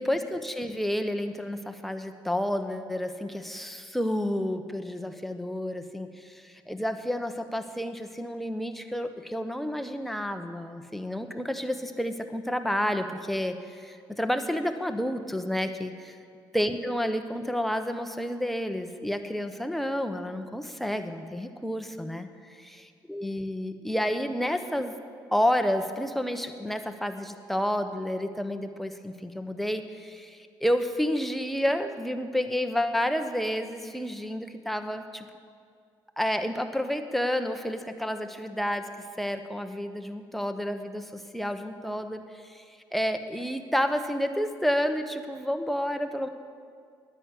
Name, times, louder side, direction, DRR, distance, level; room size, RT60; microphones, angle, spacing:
voice 1, 0.0-16.2 16.5-22.7 23.1-24.9 25.3-35.2 36.2-38.9 39.2-46.3, equal, ahead, 6 dB, 1.0 m, -30 dB
10.0 x 8.2 x 9.4 m, 2.3 s
supercardioid pair, 70°, 9 cm